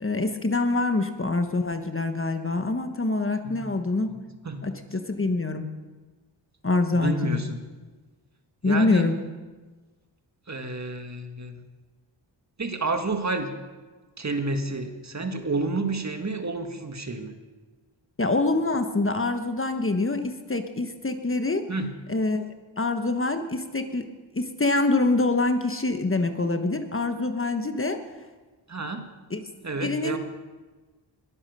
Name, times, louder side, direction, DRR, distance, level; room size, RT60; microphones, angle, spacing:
voice 1, 0.0-4.1 4.6-5.7 6.6-7.4 8.6-9.1 18.2-21.6 22.1-22.5 22.8-24.1 24.3-28.0 29.3-29.4 29.8-30.2, left 2 dB, 30° left, 7 dB, 1.2 m, -25 dB
voice 2, 6.9-7.6 8.6-9.1 10.5-11.6 12.6-13.5 14.2-17.3 21.7-21.9 28.7-29.0 29.6-30.2, right 2 dB, 35° right, 6 dB, 1.8 m, -30 dB
21.0 x 7.2 x 6.7 m, 1.3 s
cardioid pair, 50°, 45 cm